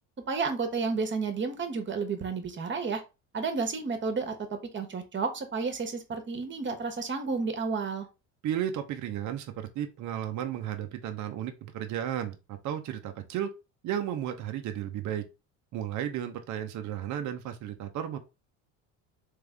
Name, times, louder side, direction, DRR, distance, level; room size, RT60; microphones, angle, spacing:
voice 1, 0.3-3.0 3.3-8.1, right 4 dB, 30° right, 1.3 m, -31 dB
voice 2, 8.4-13.5 13.8-15.2 15.7-18.2, right 10 dB, 55° right, 0.8 m, -34 dB
3.5 x 3.4 x 3.4 m
hypercardioid pair, 75°, 36 cm